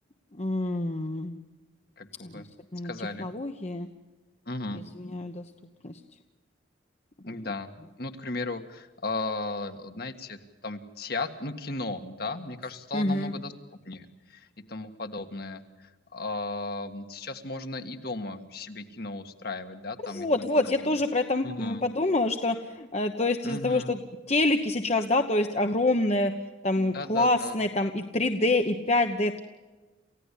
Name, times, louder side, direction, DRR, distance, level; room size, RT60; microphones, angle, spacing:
voice 1, 0.4-1.4 2.2-2.4 2.7-2.9 3.2-3.9 5.0-5.4 5.8-5.9 12.9-13.3 20.0-24.0 24.3-26.3 26.6-29.4, left 2 dB, 35° left, 5 dB, 1.1 m, -26 dB
voice 2, 2.0-2.5 2.8-3.3 4.4-4.8 7.2-7.7 8.0-13.5 13.8-20.9 21.4-21.8 23.4-24.0 26.7-27.6, left 2 dB, 55° left, 7 dB, 1.8 m, -36 dB
29.0 x 16.0 x 8.5 m, 1.2 s
head